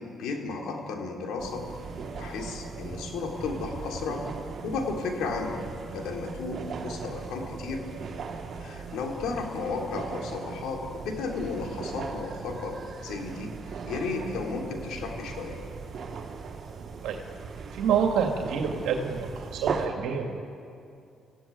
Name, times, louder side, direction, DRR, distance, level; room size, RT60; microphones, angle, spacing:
voice 1, 0.0-1.7 2.2-4.3 4.6-5.6 5.9-7.9 8.6-13.6 13.8-15.6, left 4 dB, 85° left, 2 dB, 3.4 m, -34 dB
sound 1, 1.4-19.9, right 5 dB, 55° right, 3.3 m, -38 dB
voice 2, 17.7-20.4, right 6 dB, 85° right, 2 dB, 2.2 m, -27 dB
28.0 x 15.5 x 9.3 m, 2.5 s
cardioid pair, 90°, 0 cm